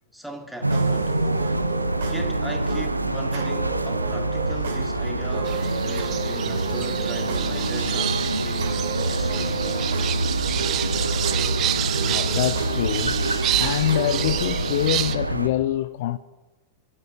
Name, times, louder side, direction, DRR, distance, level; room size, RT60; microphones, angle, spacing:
voice 1, 0.1-1.2 2.0-10.2, right 1 dB, ahead, 2.2 m, -39 dB
sound 1, 0.6-15.5, right 2 dB, 85° right, 0.6 m, -26 dB
sound 2, 0.7-14.6, right 6 dB, 60° right, 2.7 m, -34 dB
sound 3, 5.5-15.2, right 13 dB, 35° right, 0.8 m, -29 dB
voice 2, 12.0-13.2 13.6-16.2, left 13 dB, 55° left, 0.4 m, -25 dB
28.5 x 13.0 x 2.9 m
figure-of-eight pair, 90°, 0 cm